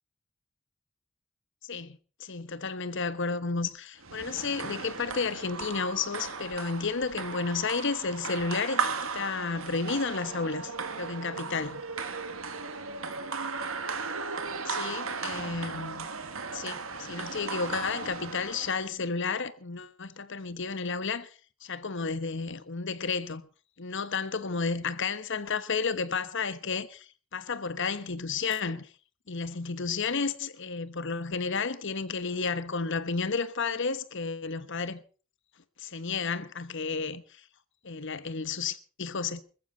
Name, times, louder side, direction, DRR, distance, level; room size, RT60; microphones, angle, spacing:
voice 1, 1.6-11.8 14.6-16.1 16.5-21.3 21.6-23.4 23.8-28.9 29.3-35.0 35.8-37.4 37.8-39.4, left 4 dB, 65° left, 1.2 m, -32 dB
sound 1, 4.0-18.9, right 5 dB, 85° right, 2.1 m, -36 dB
20.5 x 14.5 x 4.1 m
head